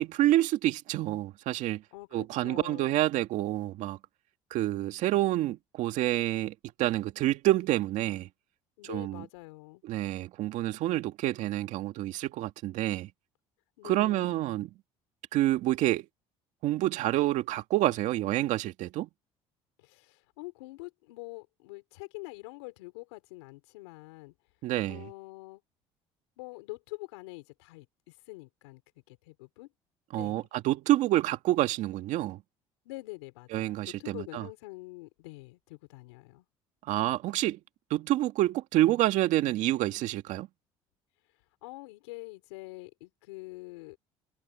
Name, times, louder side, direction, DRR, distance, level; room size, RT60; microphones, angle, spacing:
voice 1, 0.0-1.8 2.1-4.0 4.5-8.3 8.9-9.2 9.8-13.1 13.8-14.7 15.3-16.1 16.6-19.1 24.6-25.0 30.1-32.4 33.5-34.5 36.9-37.6 37.9-40.5, right 15 dB, 70° right, 2.1 m, -28 dB
voice 2, 1.9-3.0 8.8-9.8 13.8-14.5 19.8-24.3 24.9-25.6 26.4-28.8 29.1-29.7 30.1-30.4 32.8-36.5 41.6-44.0, left 24 dB, 90° left, 4.3 m, -45 dB
supercardioid pair, 80°, 13 cm